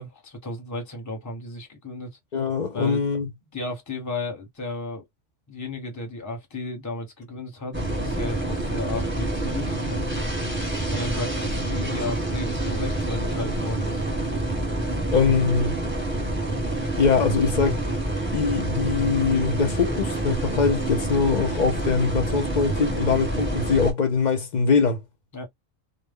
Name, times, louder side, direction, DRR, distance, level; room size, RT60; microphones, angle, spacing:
voice 1, 0.0-2.2 2.7-3.1 3.5-5.0 5.5-10.3 10.9-14.0 25.3-25.5, left 2 dB, 15° left, 0.7 m, -34 dB
voice 2, 2.3-3.3 15.1-15.7 17.0-17.8 18.3-25.0, left 5 dB, 55° left, 0.5 m, -22 dB
sound 1, 7.7-23.9, right 1 dB, 10° right, 0.8 m, -27 dB
2.1 x 2.0 x 3.4 m
omnidirectional pair, 1.2 m